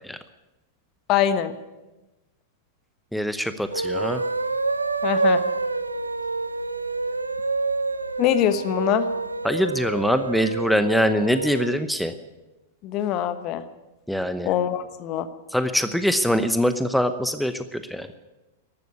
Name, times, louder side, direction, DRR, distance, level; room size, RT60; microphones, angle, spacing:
voice 1, 1.1-1.5 5.0-5.4 8.2-9.1 12.8-13.6 14.4-15.3, left 10 dB, 40° left, 11 dB, 1.2 m, -23 dB
voice 2, 3.1-4.2 9.4-12.1 14.1-14.5 15.5-18.1, equal, ahead, 10 dB, 0.8 m, -23 dB
sound 1, 3.6-11.8, right 3 dB, 90° right, 0.7 m, -27 dB
14.0 x 12.0 x 8.4 m, 1.1 s
figure-of-eight pair, 100°, 0 cm